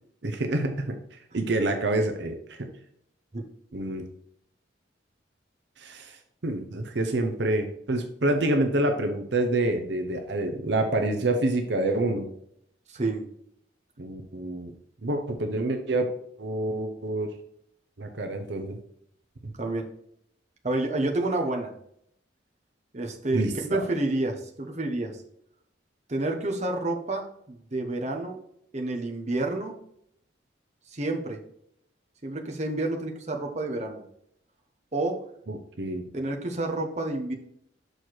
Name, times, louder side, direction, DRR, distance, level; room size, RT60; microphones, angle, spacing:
voice 1, 0.2-1.0 1.3-2.7 3.7-4.1 5.8-6.2 6.4-12.3 14.0-14.7 15.0-16.1 16.4-17.3 18.0-18.8 19.4-19.5 23.3-23.8 35.5-36.1, right 2 dB, 70° right, 5 dB, 0.7 m, -27 dB
voice 2, 12.9-13.3 19.6-19.9 20.6-21.7 22.9-25.2 26.1-28.4 28.7-29.7 30.9-31.4 32.2-34.0 34.9-35.2 36.1-37.3, right 2 dB, 40° right, 2 dB, 1.0 m, -29 dB
6.5 x 4.5 x 4.5 m, 0.71 s
head